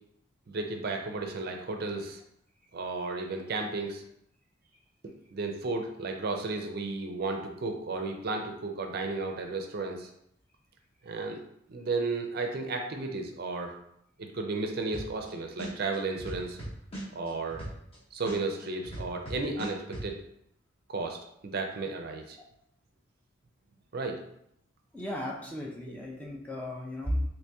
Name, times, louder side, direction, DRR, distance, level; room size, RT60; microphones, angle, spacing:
voice 1, 0.5-2.2 2.7-4.0 5.3-10.1 11.0-11.4 11.7-13.7 14.2-16.6 17.1-17.6 18.1-20.2 20.9-22.4 23.9-24.2, right 3 dB, 50° right, 3 dB, 0.4 m, -33 dB
sound 1, 14.9-15.3 15.6-18.0 18.3-20.1, right 1 dB, 30° left, 1.0 m, -38 dB
voice 2, 24.9-27.3, left 1 dB, 10° left, -2 dB, 0.4 m, -34 dB
2.9 x 2.8 x 3.4 m, 0.74 s
head